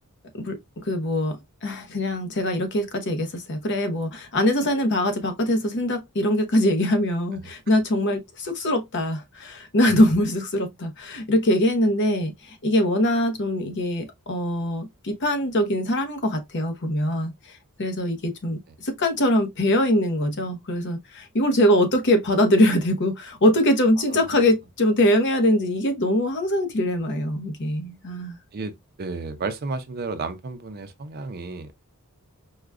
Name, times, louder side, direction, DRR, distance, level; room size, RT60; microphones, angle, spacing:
voice 1, 0.3-1.4 1.6-17.3 17.8-28.4, left 1 dB, 55° left, 0.8 m, -23 dB
voice 2, 24.1-24.5 28.5-31.7, right 3 dB, 45° right, 0.5 m, -33 dB
4.8 x 2.2 x 2.3 m
head